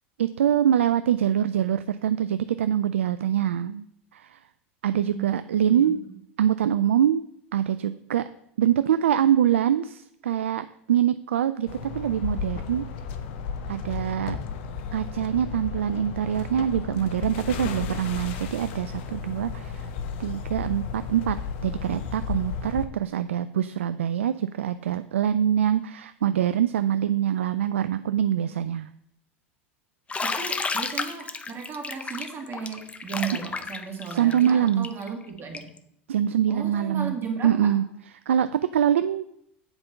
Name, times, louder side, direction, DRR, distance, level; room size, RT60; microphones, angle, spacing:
voice 1, 0.2-3.8 4.1-4.4 4.8-6.0 6.4-7.2 7.5-8.2 8.6-12.9 13.7-14.4 14.9-19.9 20.2-21.4 21.6-28.9 34.1-34.9 36.1-37.2 37.4-37.8 38.3-39.2, right 10 dB, 85° right, 12 dB, 0.3 m, -24 dB
sound 1, 11.7-22.8, left 6 dB, 65° left, 1.0 m, -34 dB
Bathtub (filling or washing), 30.1-35.8, left 4 dB, 20° left, 0.8 m, -32 dB
voice 2, 30.2-35.7 36.5-37.7, right 6 dB, 35° right, 2 dB, 2.4 m, -35 dB
8.0 x 5.2 x 6.8 m, 0.72 s
hypercardioid pair, 85°, 7 cm